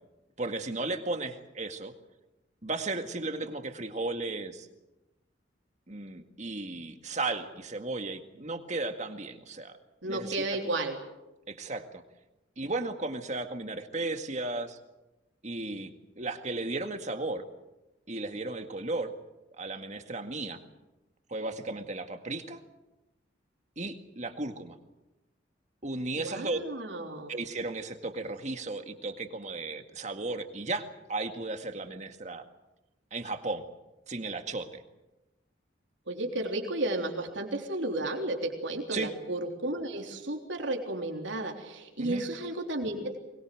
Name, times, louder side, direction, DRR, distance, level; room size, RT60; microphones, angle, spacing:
voice 1, 0.4-1.9 2.6-4.7 5.9-9.8 10.1-10.4 11.5-12.0 12.6-14.8 15.4-15.9 16.2-17.4 18.1-19.1 19.6-20.6 21.3-22.6 23.8-24.8 25.8-26.6 27.3-32.5 33.1-33.7 34.1-34.8 38.9-39.1 42.0-42.2, right 2 dB, 40° right, 7 dB, 1.9 m, -35 dB
voice 2, 10.0-11.0 26.2-27.3 36.1-43.2, right 2 dB, 75° right, 2 dB, 3.6 m, -33 dB
23.5 x 21.5 x 7.8 m, 0.99 s
head